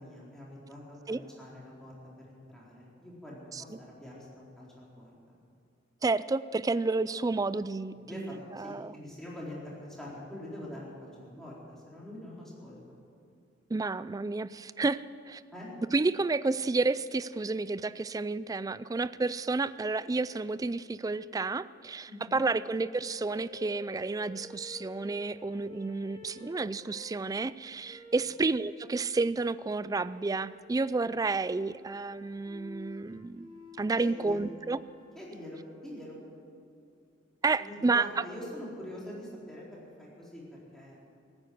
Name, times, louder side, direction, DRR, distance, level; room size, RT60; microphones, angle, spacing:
voice 1, 0.0-1.9 2.2-5.4 8.1-12.8 15.5-15.7 22.1-22.4 34.0-34.4 35.1-36.2 37.6-41.0, left 1 dB, 5° left, -6 dB, 4.2 m, -44 dB
voice 2, 6.0-8.9 13.7-15.4 15.9-33.5 33.8-34.8 37.4-38.2, right 3 dB, 20° right, 17 dB, 0.3 m, -31 dB
sound 1, 23.0-27.2 27.8-28.4 30.0-30.7 31.3-35.2, left 2 dB, 40° right, 2.5 m, -50 dB
18.5 x 9.8 x 7.9 m, 2.4 s
head